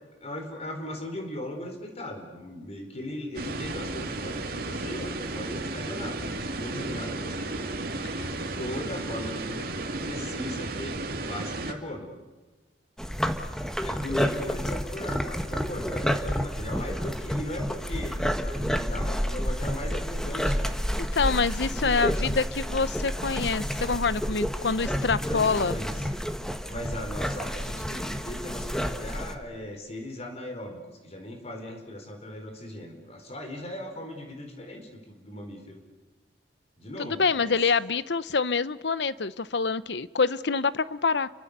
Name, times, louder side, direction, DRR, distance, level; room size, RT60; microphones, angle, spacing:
voice 1, 0.0-7.7 8.6-9.7 10.0-12.1 13.8-18.2 18.5-20.6 21.7-22.2 25.1-26.1 26.7-35.8 36.8-37.6, left 1 dB, 40° left, 3 dB, 4.5 m, -38 dB
sound 1, 3.3-11.7, right 2 dB, 60° right, 2.4 m, -33 dB
sound 2, 13.0-29.3, equal, 5° left, 1.5 m, -30 dB
voice 2, 21.0-25.8 37.0-41.3, left 4 dB, 75° left, 16 dB, 0.8 m, -26 dB
30.0 x 24.5 x 6.8 m, 1.3 s
head